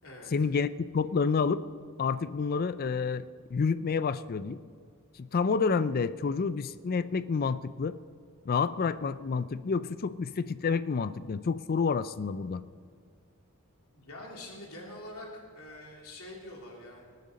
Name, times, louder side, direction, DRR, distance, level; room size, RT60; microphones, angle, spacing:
voice 1, 0.3-0.7 0.9-1.6 2.0-3.3 3.5-4.6 5.2-8.0 8.5-12.6, left 5 dB, 45° left, 14 dB, 0.4 m, -29 dB
voice 2, 13.9-17.0, left 1 dB, 80° left, -2 dB, 3.0 m, -45 dB
18.5 x 9.3 x 4.2 m, 2.1 s
head